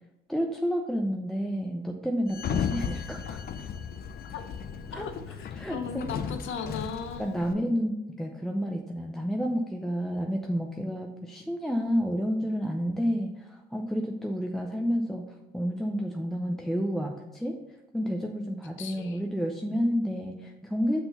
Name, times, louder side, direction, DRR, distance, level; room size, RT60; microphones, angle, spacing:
voice 1, 0.3-3.4 4.9-5.1 5.5-6.1 7.2-15.2 15.5-17.6 17.9-21.0, equal, ahead, 1 dB, 0.6 m, -30 dB
Sliding door, 2.3-7.5, left 7 dB, 50° left, 0.5 m, -35 dB
voice 2, 4.9-7.4 18.8-19.2, left 6 dB, 75° left, 7 dB, 0.8 m, -37 dB
5.7 x 3.9 x 5.3 m, 0.93 s
cardioid pair, 90°, 20 cm